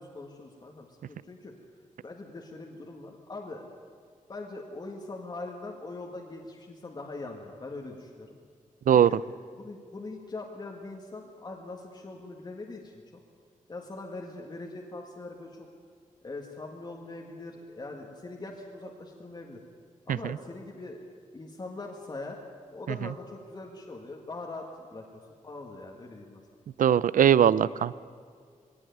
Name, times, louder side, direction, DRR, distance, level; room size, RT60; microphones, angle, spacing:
voice 1, 0.0-1.5 2.0-3.6 4.3-8.3 9.1-9.2 9.6-13.2 13.7-15.7 16.2-19.6 20.1-21.0 21.3-22.4 22.7-25.0 25.4-26.4, left 2 dB, 30° left, 0 dB, 1.8 m, -42 dB
voice 2, 26.8-28.0, right 9 dB, 80° right, 19 dB, 0.5 m, -20 dB
20.5 x 17.5 x 9.4 m, 2.1 s
wide cardioid pair, 165°, 14 cm